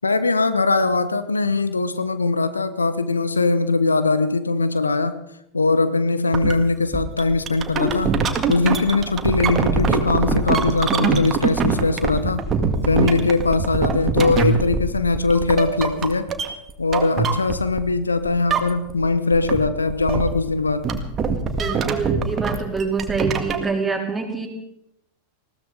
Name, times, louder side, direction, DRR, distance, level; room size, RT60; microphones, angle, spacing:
voice 1, 0.0-5.2 5.5-8.1 8.5-12.4 12.8-16.3 16.8-20.9, left 3 dB, 75° left, 12 dB, 1.0 m, -21 dB
sound 1, 6.3-6.5 6.9-18.0 18.2-19.1 19.3-23.7, right 5 dB, 25° right, 1.9 m, -23 dB
voice 2, 21.5-24.5, right 4 dB, 10° right, 0 dB, 3.6 m, -25 dB
20.0 x 16.5 x 4.0 m, 0.81 s
figure-of-eight pair, 90°, 0 cm